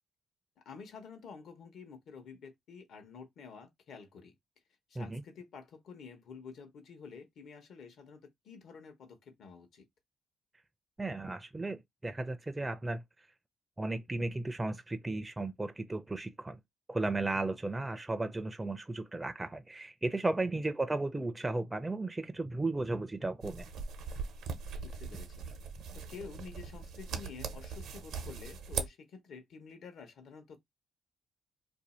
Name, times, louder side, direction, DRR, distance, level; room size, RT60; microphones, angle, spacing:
voice 1, 0.6-4.3 4.9-9.9 20.7-20.8 24.8-25.4 25.9-30.6, left 5 dB, 70° left, 0.9 m, -50 dB
voice 2, 11.0-13.0 13.8-16.6 16.9-23.7, right 2 dB, 15° right, 0.4 m, -35 dB
sound 1, 23.4-28.9, right 5 dB, 80° right, 0.7 m, -40 dB
2.6 x 2.4 x 4.1 m
cardioid pair, 90°, 0 cm